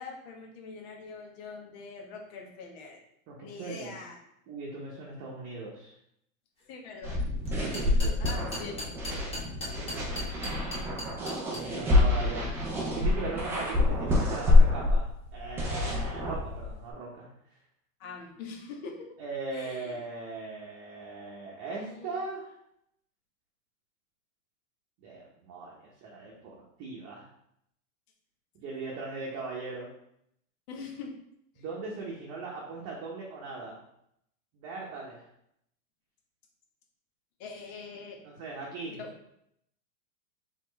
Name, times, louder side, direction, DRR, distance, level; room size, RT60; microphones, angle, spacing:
voice 1, 0.0-3.0 3.4-4.2 6.7-7.2 8.2-8.8 18.0-19.1 19.5-20.0 21.7-22.2 30.7-31.1 31.6-31.7 37.4-38.2 38.9-39.1, left 4 dB, 45° left, 1 dB, 1.2 m, -43 dB
voice 2, 3.3-4.0 4.5-5.9 7.7-8.8 9.8-10.3 11.5-12.5 12.9-17.3 19.2-22.5 25.0-27.2 28.6-29.9 31.6-33.8 34.5-35.2 38.2-39.0, right 3 dB, 35° right, -3 dB, 0.9 m, -39 dB
sound 1, 7.0-16.9, left 2 dB, 5° right, 0.3 m, -26 dB
sound 2, 7.5-11.6, left 1 dB, 15° left, 1.1 m, -37 dB
4.3 x 3.8 x 3.1 m, 0.75 s
supercardioid pair, 140°, 41 cm